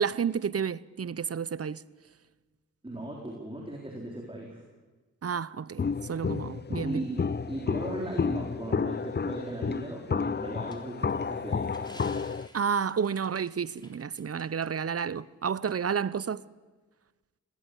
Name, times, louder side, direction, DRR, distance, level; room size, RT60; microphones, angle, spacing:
voice 1, 0.0-1.8 5.2-7.0 12.5-16.4, right 7 dB, 45° right, 0.8 m, -30 dB
voice 2, 2.8-4.6 6.8-12.1, right 1 dB, 15° right, 4.2 m, -38 dB
Walk footsteps, 5.8-12.5, left 5 dB, 30° left, 0.6 m, -31 dB
sound 1, 10.7-14.7 15.0-15.1 15.7-15.8, left 1 dB, 15° left, 3.5 m, -54 dB
20.0 x 18.0 x 8.3 m
cardioid pair, 45°, 34 cm